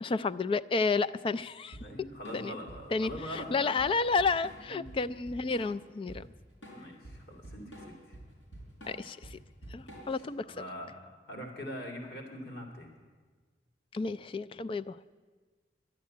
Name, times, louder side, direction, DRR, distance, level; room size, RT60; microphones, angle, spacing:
voice 1, 0.0-1.8 2.3-2.6 2.9-6.3 8.9-9.4 9.7-10.6 13.9-15.0, left 4 dB, 30° left, 14 dB, 0.3 m, -31 dB
Drum kit / Drum, 1.7-10.3, right 1 dB, 80° left, 4.7 m, -48 dB
voice 2, 1.8-3.8 4.7-4.9 6.7-8.2 9.9-10.0 10.4-12.9, equal, 60° left, 1 dB, 2.6 m, -43 dB
11.5 x 10.5 x 8.5 m, 1.4 s
head